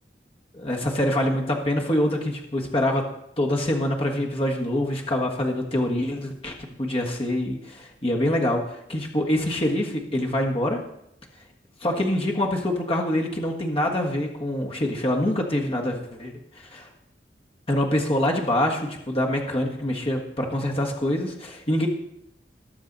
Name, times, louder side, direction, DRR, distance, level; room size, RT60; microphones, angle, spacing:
voice 1, 0.5-3.0 3.4-10.8 11.8-16.3 16.7-16.9 17.7-21.9, left 1 dB, 35° left, 0 dB, 1.5 m, -25 dB
19.0 x 7.0 x 4.0 m, 0.78 s
head